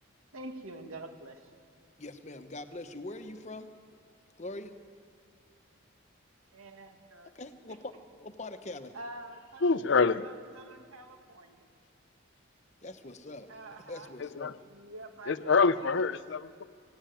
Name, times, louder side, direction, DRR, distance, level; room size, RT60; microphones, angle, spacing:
voice 1, 0.3-1.5 6.5-7.3 8.9-9.7 10.2-11.7 13.5-14.2 14.6-16.2, right 2 dB, 85° right, 5 dB, 1.9 m, -47 dB
voice 2, 2.0-3.7 4.4-4.8 7.3-7.9 8.2-8.9 12.8-13.5 13.9-14.5, left 2 dB, 35° left, 9 dB, 1.0 m, -42 dB
voice 3, 9.6-10.3 14.2-14.5 15.3-16.6, left 4 dB, 55° left, 15 dB, 0.5 m, -26 dB
18.5 x 17.0 x 9.2 m, 2.3 s
head